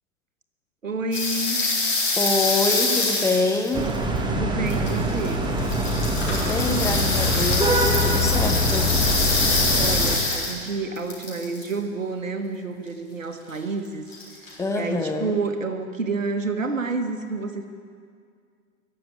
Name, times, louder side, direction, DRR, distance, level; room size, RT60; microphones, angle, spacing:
voice 1, 0.8-1.6 4.3-5.4 9.8-14.0 14.8-17.7, right 3 dB, 80° right, 7 dB, 1.3 m, -29 dB
sound 1, 1.1-4.2 4.7-5.3 5.6-10.7 11.0-11.7 14.1-14.5, left 3 dB, 80° left, 4.2 m, -25 dB
voice 2, 2.2-3.9 6.3-9.0 14.6-15.4, left 3 dB, 10° left, 4 dB, 0.6 m, -26 dB
sound 2, 3.7-10.2, equal, 10° right, 1.1 m, -23 dB
14.5 x 6.9 x 9.5 m, 2.1 s
figure-of-eight pair, 100°, 38 cm